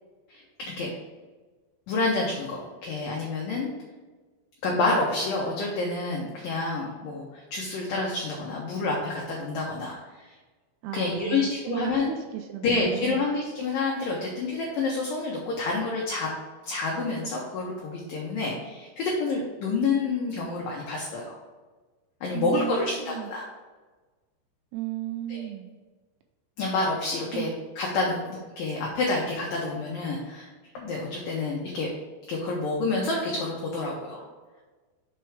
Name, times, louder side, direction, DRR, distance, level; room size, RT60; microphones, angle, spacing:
voice 1, 0.3-0.9 1.9-3.7 4.6-10.3 10.9-12.1 12.6-16.3 16.7-21.4 22.2-23.5 25.3-25.5 26.6-30.5 30.8-31.9 32.3-34.2, left 3 dB, 75° left, -2 dB, 2.1 m, -28 dB
voice 2, 10.8-13.2 22.3-23.3 24.7-25.7 27.3-27.5, right 12 dB, 85° right, 4 dB, 2.3 m, -34 dB
6.1 x 4.5 x 4.8 m, 1.3 s
omnidirectional pair, 5.0 m